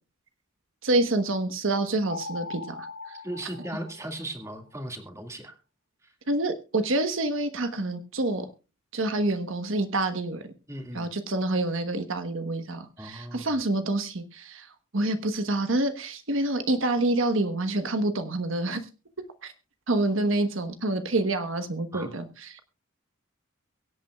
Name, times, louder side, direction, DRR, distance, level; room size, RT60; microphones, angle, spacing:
voice 1, 0.8-2.9 6.3-8.5 8.9-10.5 10.9-14.7 14.9-18.8 19.4-19.5 19.9-22.6, right 2 dB, 70° right, 8 dB, 1.2 m, -27 dB
sound 1, 2.1-4.5, left 3 dB, 80° left, 1.7 m, -40 dB
voice 2, 3.2-5.6 6.0-6.1 10.7-11.1 13.0-13.5 21.9-22.1, right 1 dB, 15° right, 4 dB, 2.0 m, -37 dB
23.5 x 8.6 x 2.4 m, 0.31 s
head